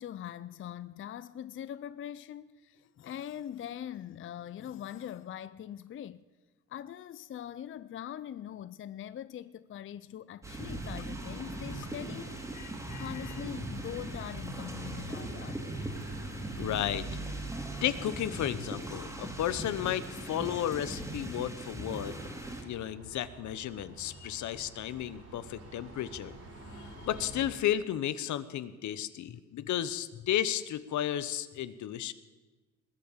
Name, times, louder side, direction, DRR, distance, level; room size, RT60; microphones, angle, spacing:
voice 1, 0.0-6.2 6.7-12.4 12.9-15.8 26.5-27.2 29.3-29.7, left 10 dB, 45° left, 0.5 m, -42 dB
sound 1, 10.4-22.6, right 1 dB, 10° right, 3.2 m, -40 dB
sound 2, 10.4-27.5, right 3 dB, 50° right, 4.3 m, -46 dB
voice 2, 12.5-13.1 16.6-17.1 17.4-17.5 17.8-22.2 22.6-26.4 26.7-32.1, left 11 dB, 70° left, 0.9 m, -33 dB
20.5 x 8.6 x 7.3 m
cardioid pair, 90°, 30 cm